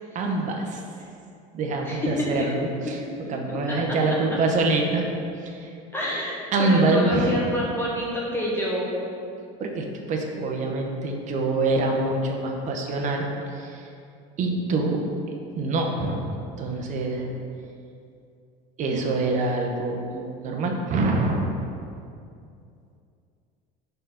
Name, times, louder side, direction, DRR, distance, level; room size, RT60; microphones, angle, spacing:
voice 1, 0.1-0.8 1.5-3.0 3.3-5.1 5.4-5.7 6.5-7.3 9.6-13.9 14.4-15.0 15.6-16.2 16.6-17.3 18.8-21.5, right 2 dB, 40° right, 2 dB, 0.9 m, -25 dB
voice 2, 1.8-2.3 2.8-2.9 3.3-3.6 5.9-9.0, equal, 10° left, -6 dB, 0.9 m, -27 dB
4.5 x 3.9 x 5.7 m, 2.5 s
supercardioid pair, 120°, 19 cm